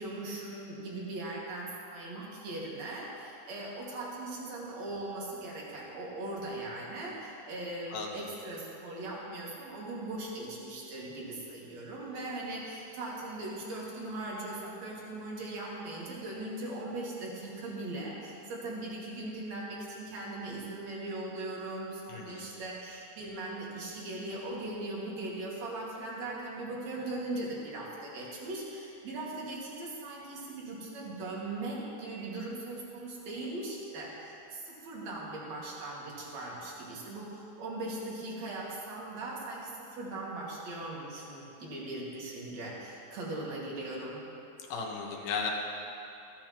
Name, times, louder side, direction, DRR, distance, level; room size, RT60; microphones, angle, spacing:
voice 1, 0.0-44.2, right 2 dB, 50° right, -4 dB, 2.7 m, -39 dB
voice 2, 7.9-8.3 22.1-22.4 44.7-45.5, left 5 dB, 70° left, -1 dB, 2.7 m, -35 dB
15.5 x 13.5 x 3.0 m, 2.7 s
omnidirectional pair, 4.7 m